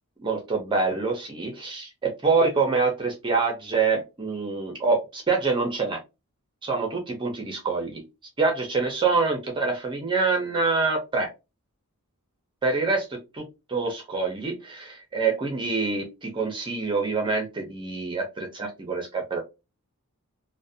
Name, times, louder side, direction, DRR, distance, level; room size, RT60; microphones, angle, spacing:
voice 1, 0.2-6.0 6.6-8.0 8.4-11.3 12.6-13.4 13.7-19.4, right 4 dB, 20° right, 2 dB, 0.5 m, -26 dB
2.5 x 2.1 x 2.5 m, 0.25 s
head